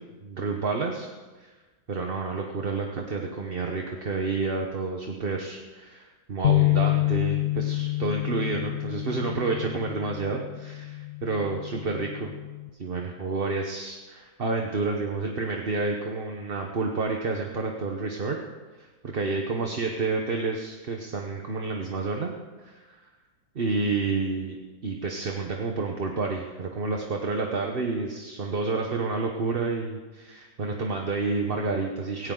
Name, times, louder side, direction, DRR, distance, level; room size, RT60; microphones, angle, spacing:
voice 1, 0.2-1.1 1.4-1.5 1.9-12.3 12.8-18.4 18.8-22.3 22.6-23.0 23.5-24.6 24.8-32.3, right 3 dB, 40° right, 2 dB, 1.1 m, -29 dB
sound 1, 6.4-12.7, left 17 dB, 75° left, 0.6 m, -28 dB
17.5 x 17.0 x 3.9 m, 1.3 s
omnidirectional pair, 1.8 m